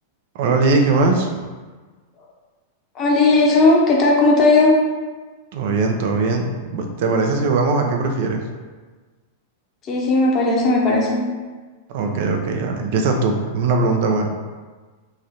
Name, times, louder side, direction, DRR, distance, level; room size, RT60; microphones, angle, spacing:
voice 1, 0.3-1.4 5.5-8.4 11.9-14.3, right 3 dB, 55° right, 3 dB, 0.5 m, -20 dB
voice 2, 2.9-4.7 9.8-11.2, left 2 dB, 30° left, -2 dB, 0.8 m, -16 dB
3.2 x 2.5 x 4.1 m, 1.4 s
supercardioid pair, 150°, 0 cm